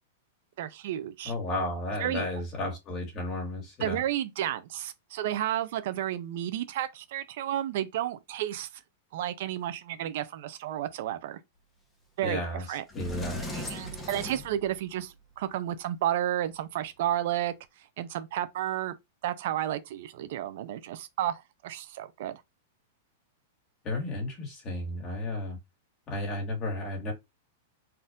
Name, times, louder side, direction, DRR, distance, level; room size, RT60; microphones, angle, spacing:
voice 1, 0.6-1.3 2.0-2.3 3.8-8.7 9.1-11.4 12.2-12.8 13.5-17.5 18.0-18.9 19.2-22.4, right 12 dB, 55° right, 0.5 m, -32 dB
voice 2, 1.3-4.0 12.2-13.4 23.8-25.6 26.1-27.1, left 1 dB, 25° left, 2.0 m, -33 dB
Sliding door, 12.4-12.5 12.9-15.2, equal, 10° left, 0.9 m, -38 dB
4.2 x 2.6 x 3.6 m
supercardioid pair, 160°, 0 cm